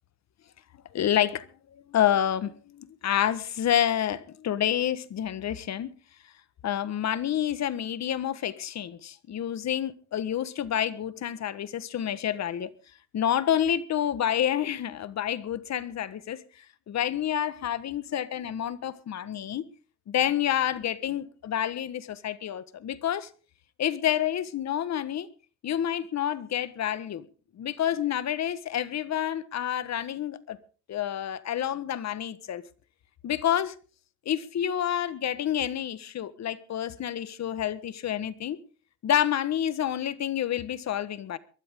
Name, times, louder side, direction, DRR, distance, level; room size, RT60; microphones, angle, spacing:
voice 1, 0.9-1.5 1.7-5.9 6.6-12.7 13.1-16.4 16.9-19.6 20.1-23.3 23.8-25.3 25.6-27.2 27.6-30.6 30.9-32.6 33.2-33.7 34.2-38.6 39.0-41.4, left 10 dB, 65° left, 1.5 m, -28 dB
22.5 x 13.0 x 3.8 m
cardioid pair, 90°, 30 cm